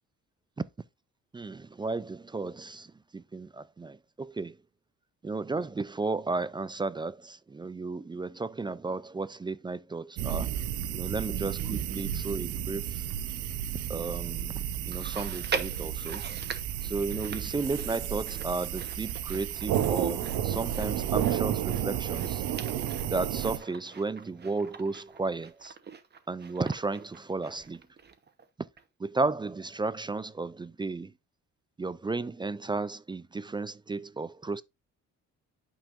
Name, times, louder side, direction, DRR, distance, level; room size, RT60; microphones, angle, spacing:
voice 1, 1.3-4.6 5.2-10.5 10.9-13.1 13.9-14.6 14.9-16.3 16.8-22.4 23.1-25.8 26.3-27.8 29.0-31.1 31.8-34.6, right 3 dB, 15° right, 0.3 m, -34 dB
sound 1, 10.2-23.6, right 10 dB, 90° right, 0.9 m, -32 dB
Chewing mastication, 14.9-28.5 28.8-28.9 29.7-29.8, right 5 dB, 35° right, 1.0 m, -42 dB
8.9 x 5.5 x 2.5 m
cardioid pair, 90°, 30 cm